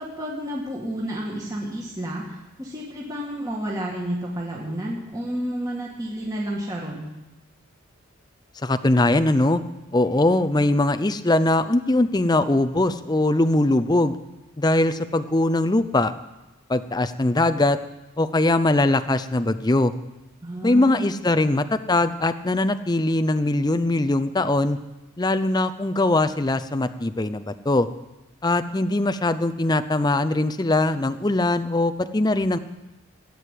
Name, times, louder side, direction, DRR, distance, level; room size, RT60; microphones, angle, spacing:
voice 1, 0.0-7.1 20.4-21.2, equal, 15° right, -4 dB, 2.1 m, -31 dB
voice 2, 8.6-9.6 9.9-14.1 14.6-16.1 16.7-17.8 18.2-19.9 20.6-24.8 25.2-27.9 28.4-32.6, left 2 dB, 20° left, 10 dB, 0.5 m, -21 dB
16.5 x 9.4 x 8.4 m, 1.0 s
head